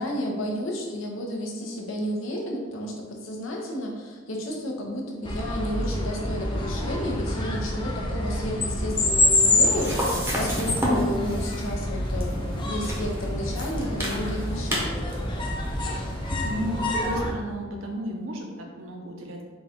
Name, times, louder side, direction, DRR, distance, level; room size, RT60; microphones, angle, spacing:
voice 1, 0.0-10.0 10.4-15.0, equal, 75° left, 0 dB, 0.7 m, -32 dB
sound 1, 5.2-17.3, left 1 dB, 25° left, 0.4 m, -27 dB
sound 2, 8.9-17.2, equal, 10° right, 0.7 m, -33 dB
voice 2, 16.4-19.4, equal, 80° right, 2 dB, 0.6 m, -33 dB
3.9 x 2.4 x 3.5 m, 1.4 s
head